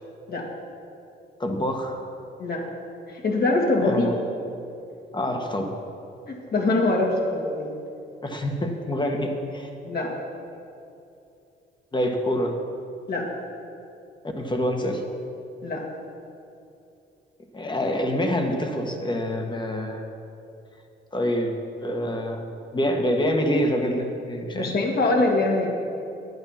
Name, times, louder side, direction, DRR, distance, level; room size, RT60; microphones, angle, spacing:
voice 1, 1.4-2.0 3.8-4.1 5.1-5.7 8.2-9.7 11.9-12.6 14.4-15.0 17.5-20.0 21.1-21.5 21.8-22.5 22.7-24.7, equal, 25° left, 4 dB, 1.5 m, -26 dB
voice 2, 3.1-4.1 6.3-7.7 9.8-10.1 13.1-13.3 15.6-15.8 24.5-25.7, left 2 dB, 50° left, 0 dB, 2.2 m, -23 dB
11.0 x 8.8 x 5.9 m, 2.6 s
cardioid pair, 90°, 20 cm